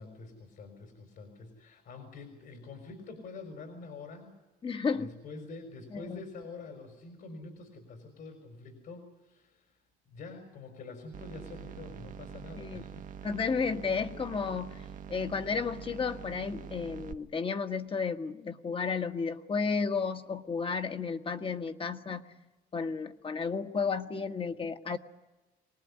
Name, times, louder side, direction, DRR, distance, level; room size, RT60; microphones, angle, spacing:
voice 1, 0.0-4.3 5.0-9.8 10.1-13.1, left 3 dB, 65° left, 5 dB, 4.6 m, -46 dB
voice 2, 4.6-5.1 5.9-6.2 12.6-12.8 13.2-22.4 22.7-25.0, left 5 dB, 30° left, 7 dB, 1.5 m, -33 dB
sound 1, 11.1-17.1, right 8 dB, 50° right, 1.1 m, -45 dB
24.0 x 19.5 x 9.7 m, 1.1 s
cardioid pair, 110°, 17 cm